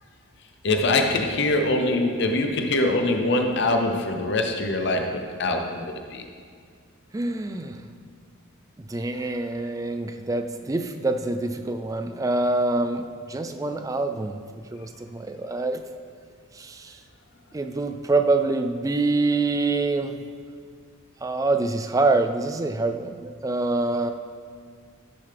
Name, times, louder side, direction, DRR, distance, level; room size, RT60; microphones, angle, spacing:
voice 1, 0.6-6.2, left 2 dB, 50° left, 4 dB, 0.6 m, -23 dB
voice 2, 7.1-7.8 8.9-15.8 16.5-17.0 17.5-20.2 21.2-24.1, right 3 dB, 15° right, 7 dB, 0.3 m, -25 dB
11.0 x 6.8 x 3.4 m, 2.1 s
head